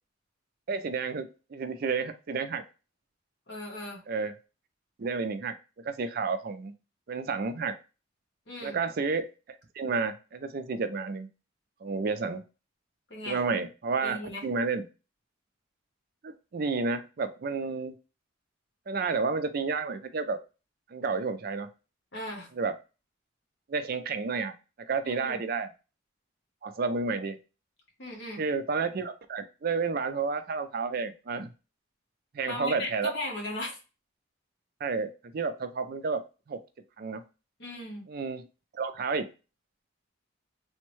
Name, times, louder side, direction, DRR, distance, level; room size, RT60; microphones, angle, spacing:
voice 1, 0.7-2.6 4.1-4.3 5.0-6.7 7.1-7.7 8.6-9.3 9.8-11.3 11.8-12.4 13.3-14.2 14.4-14.8 16.2-17.9 18.9-20.4 20.9-21.7 22.6-22.8 23.7-24.5 24.8-25.7 26.6-27.4 28.4-31.5 32.3-33.1 34.8-36.2 36.5-36.6 37.0-37.2 38.1-38.4 38.7-39.3, right 4 dB, 50° right, 9 dB, 0.4 m, -31 dB
voice 2, 3.5-4.0 8.5-8.8 13.1-13.4 14.0-14.4 22.1-22.5 25.0-25.4 28.0-28.4 32.5-33.8 37.6-38.1, left 1 dB, 60° left, -1 dB, 1.3 m, -37 dB
3.4 x 2.1 x 3.0 m, 0.30 s
head